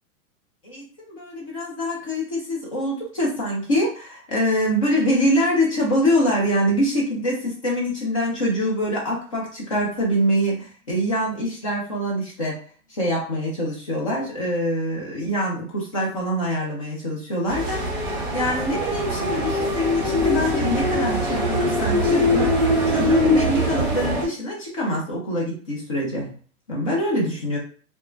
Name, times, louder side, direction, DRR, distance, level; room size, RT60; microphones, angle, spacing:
voice 1, 0.6-12.6 12.9-17.8 18.3-22.5 22.8-26.3 26.7-27.6, equal, 25° left, -4 dB, 0.4 m, -24 dB
sound 1, 17.5-24.3, equal, 25° right, 1.0 m, -22 dB
2.4 x 2.1 x 3.1 m, 0.41 s
supercardioid pair, 175°, 44 cm